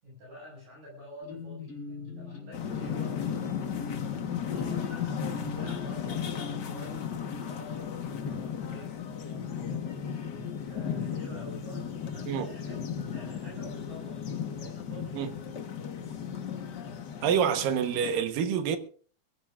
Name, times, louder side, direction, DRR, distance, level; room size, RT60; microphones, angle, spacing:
voice 1, 0.0-3.6 4.3-9.9 10.4-15.7, left 1 dB, 65° right, 8.6 m, -48 dB
sound 1, 1.2-7.9, left 4 dB, 40° left, 5.1 m, -42 dB
sound 2, 2.5-18.2, left 7 dB, 65° left, 1.0 m, -35 dB
voice 2, 17.2-18.8, right 8 dB, 90° right, 2.9 m, -27 dB
22.5 x 17.0 x 2.5 m
omnidirectional pair, 3.8 m